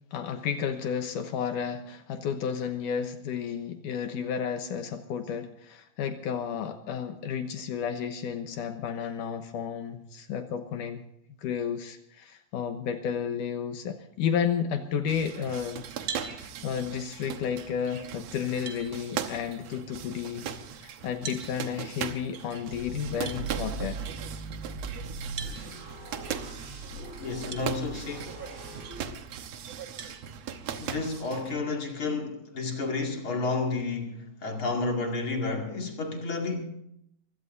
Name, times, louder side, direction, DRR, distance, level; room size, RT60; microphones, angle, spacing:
voice 1, 0.1-11.0 11.4-15.9 16.3-20.5 20.8-24.0, left 7 dB, 75° left, 2.4 m, -32 dB
sound 1, 15.1-31.6, right 8 dB, 65° right, 1.8 m, -39 dB
sound 2, 16.1-16.3 18.0-18.1 18.6-18.9 21.2-21.5 23.2-23.4 25.4-25.6 27.5-27.6 28.3-28.4 30.0-30.2, right 5 dB, 45° right, 1.6 m, -37 dB
sound 3, 22.7-29.1, right 3 dB, 20° right, 6.7 m, -40 dB
voice 2, 27.2-28.4 30.8-36.6, left 3 dB, 40° left, 2.8 m, -31 dB
24.5 x 16.5 x 2.6 m
omnidirectional pair, 4.0 m